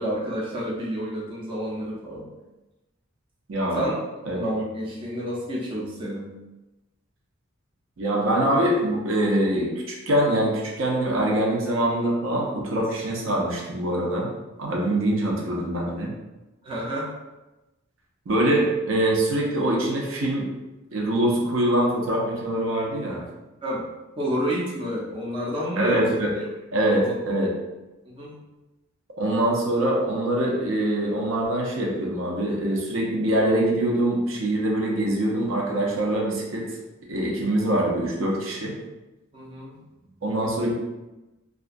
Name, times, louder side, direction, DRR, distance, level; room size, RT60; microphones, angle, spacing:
voice 1, 0.0-2.3 3.7-4.0 4.3-6.3 15.6-15.7 16.6-17.1 23.6-23.9 24.2-26.0 26.9-27.2 28.1-28.3 39.3-39.8, equal, 25° right, -6 dB, 0.4 m, -29 dB
voice 2, 3.5-3.9 4.3-4.4 8.0-14.3 14.6-16.1 18.3-20.5 20.9-23.2 25.8-26.3 26.7-27.5 29.2-36.8 37.1-38.8 40.2-40.7, right 1 dB, 75° right, -2 dB, 0.6 m, -24 dB
2.4 x 2.2 x 2.5 m, 1.0 s
head